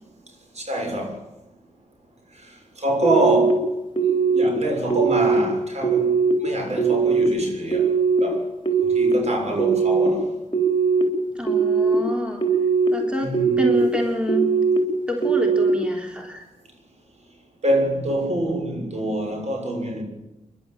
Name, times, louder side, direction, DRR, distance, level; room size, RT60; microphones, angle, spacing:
voice 1, 0.6-1.2 2.8-3.6 4.0-6.1 6.4-7.9 8.2-8.4 8.9-10.3 13.2-13.6 17.6-20.0, right 1 dB, 50° right, 6.6 m, -25 dB
sound 1, 3.0-3.5 4.0-4.4 4.9-5.4 5.8-6.3 6.8-7.3 7.7-8.2 8.6-9.1 9.6-10.1 10.5-11.0 11.5-11.9 12.4-12.9 13.3-13.8 14.3-14.8 15.2-15.7, right 6 dB, 35° left, 3.8 m, -20 dB
voice 2, 11.4-12.4 12.9-13.3 13.6-14.5 15.1-16.4, equal, 5° right, 3.5 m, -27 dB
28.0 x 12.0 x 9.0 m
cardioid pair, 85°, 14 cm